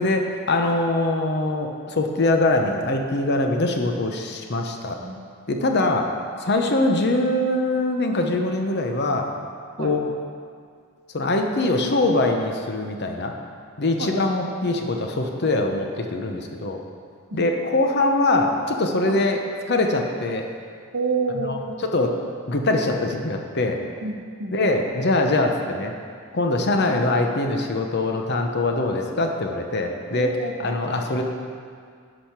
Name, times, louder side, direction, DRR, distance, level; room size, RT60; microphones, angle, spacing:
voice 1, 0.0-5.0 5.5-6.1 6.4-9.3 9.8-10.1 11.1-13.3 13.8-16.8 17.3-19.4 19.7-20.5 21.4-21.5 21.8-22.1 22.5-23.8 24.5-25.9 26.3-30.3 30.6-31.2, left 2 dB, 50° left, 3 dB, 0.8 m, -23 dB
voice 2, 20.9-21.7 24.0-24.7 26.8-26.9 30.1-31.0, right 3 dB, 65° right, 1 dB, 1.1 m, -29 dB
10.5 x 5.1 x 5.9 m, 2.1 s
head